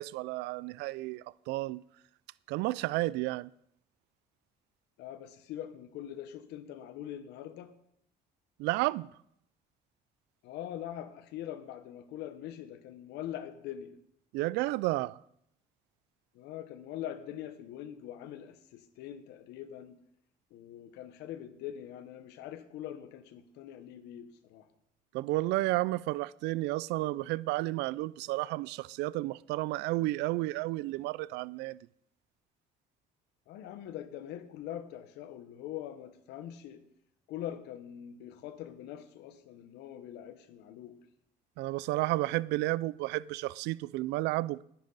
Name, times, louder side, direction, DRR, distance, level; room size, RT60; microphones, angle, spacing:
voice 1, 0.0-1.8 2.5-3.5 8.6-9.1 14.3-15.2 25.1-31.8 41.6-44.6, right 18 dB, 90° right, 0.4 m, -32 dB
voice 2, 5.0-7.7 10.4-14.0 16.3-20.0 20.5-24.7 33.5-36.8 37.3-41.0, left 11 dB, 90° left, 1.2 m, -43 dB
19.0 x 10.5 x 4.0 m
cardioid pair, 110°, 17 cm